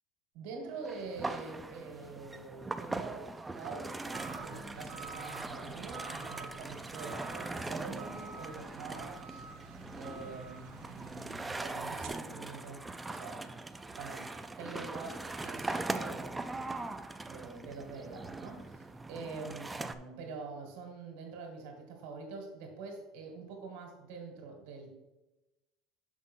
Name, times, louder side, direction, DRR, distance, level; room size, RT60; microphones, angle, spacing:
voice 1, 0.3-10.6 10.9-13.5 13.9-16.3 16.6-16.9 17.3-24.9, right 4 dB, 75° right, 3 dB, 1.9 m, -45 dB
sound 1, 0.8-20.0, right 2 dB, 10° right, 0.4 m, -41 dB
sound 2, 4.1-12.1, right 4 dB, 60° right, 1.0 m, -49 dB
6.3 x 5.2 x 5.5 m, 1.0 s
cardioid pair, 160°, 0 cm